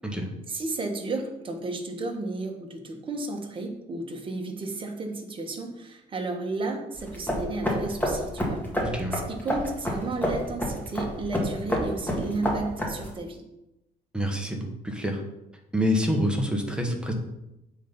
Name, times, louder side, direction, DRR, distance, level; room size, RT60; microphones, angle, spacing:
voice 1, 0.5-8.6 9.1-13.4, right 3 dB, 30° right, 3 dB, 1.3 m, -33 dB
sound 1, 6.9-13.2, equal, 10° left, 1.8 m, -29 dB
voice 2, 8.8-9.2 14.1-15.2 15.7-17.1, equal, 5° right, 2 dB, 1.2 m, -27 dB
7.6 x 4.0 x 5.3 m, 0.92 s
cardioid pair, 110°, 17 cm